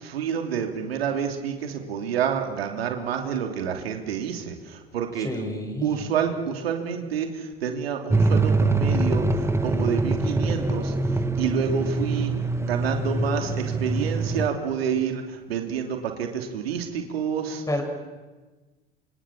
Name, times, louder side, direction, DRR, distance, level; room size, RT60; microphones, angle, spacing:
voice 1, 0.0-4.5 4.9-5.3 5.8-7.3 7.6-9.2 9.6-10.9 11.4-12.3 12.6-15.2 15.5-17.6, right 7 dB, 85° right, 4 dB, 3.1 m, -28 dB
voice 2, 5.2-6.1 17.7-17.8, left 1 dB, 10° left, 4 dB, 6.8 m, -29 dB
sound 1, 8.1-14.5, right 2 dB, 10° right, 1.7 m, -24 dB
27.0 x 26.5 x 7.5 m, 1.3 s
hypercardioid pair, 85°, 30 cm